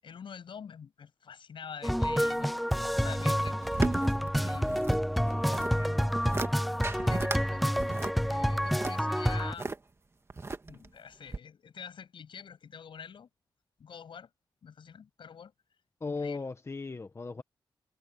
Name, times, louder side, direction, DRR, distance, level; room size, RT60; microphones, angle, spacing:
voice 1, 0.0-2.5 2.9-4.8 5.5-6.1 6.8-7.7 8.2-9.8 10.7-13.3 13.8-14.3 14.6-15.5 16.1-16.5, left 7 dB, 80° left, 7.5 m, -46 dB
Technology - Upbeat Loop, 1.8-9.5, equal, ahead, 0.4 m, -28 dB
sound 1, 3.1-5.0 5.3-5.7 6.1-6.5 6.8-7.4 7.8-9.8 10.3-10.9 11.3-11.4, right 3 dB, 30° right, 1.7 m, -35 dB
voice 2, 16.0-17.4, left 4 dB, 30° left, 1.1 m, -36 dB
wide cardioid pair, 90°, 8 cm